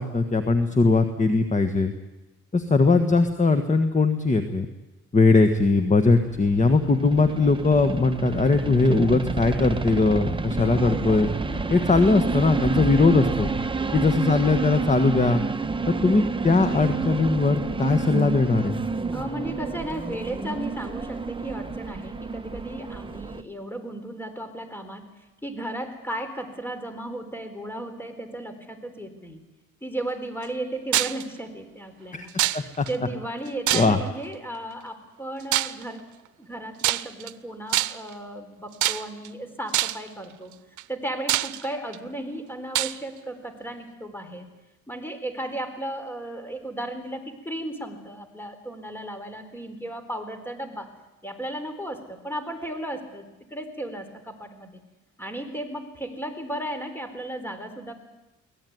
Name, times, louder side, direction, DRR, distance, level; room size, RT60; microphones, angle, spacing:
voice 1, 0.0-1.9 2.5-4.7 5.1-11.3 11.7-13.5 13.9-15.4 15.9-18.8 32.1-32.3 32.5-32.9 33.7-34.0, left 3 dB, 25° left, 8 dB, 1.6 m, -20 dB
sound 1, 5.7-23.4, right 4 dB, 15° right, 1.1 m, -29 dB
sound 2, 8.8-14.8, left 5 dB, 85° left, 5.0 m, -42 dB
voice 2, 13.8-14.1 19.1-25.1 25.4-29.4 29.8-36.0 36.4-40.6 40.9-44.5 44.9-50.9 51.2-54.8 55.2-57.9, right 1 dB, 5° left, 8 dB, 4.1 m, -35 dB
sound 3, 30.9-31.2 32.4-32.9 33.7-34.2 35.5-35.8 36.8-37.3 37.7-38.1 38.8-39.3 39.7-40.1 40.8-40.9 41.3-42.0 42.7-43.0, right 14 dB, 75° right, 0.8 m, -24 dB
23.5 x 18.0 x 9.6 m, 1.0 s
cardioid pair, 90°, 30 cm